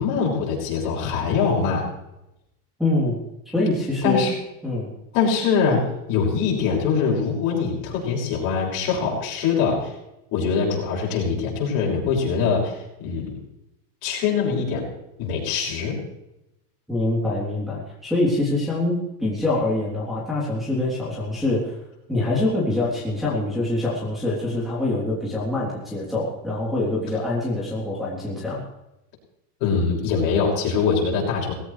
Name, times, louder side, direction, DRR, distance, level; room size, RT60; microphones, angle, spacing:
voice 1, 0.0-1.9 4.0-4.3 5.1-9.9 10.3-13.4 14.0-14.9 15.2-16.0 29.6-31.5, left 5 dB, 50° left, -3 dB, 6.2 m, -23 dB
voice 2, 2.8-3.2 3.5-4.3 4.6-4.9 16.9-21.8 22.1-28.6, left 2 dB, ahead, -8 dB, 3.5 m, -24 dB
19.0 x 16.5 x 3.3 m, 0.88 s
supercardioid pair, 170°, 46 cm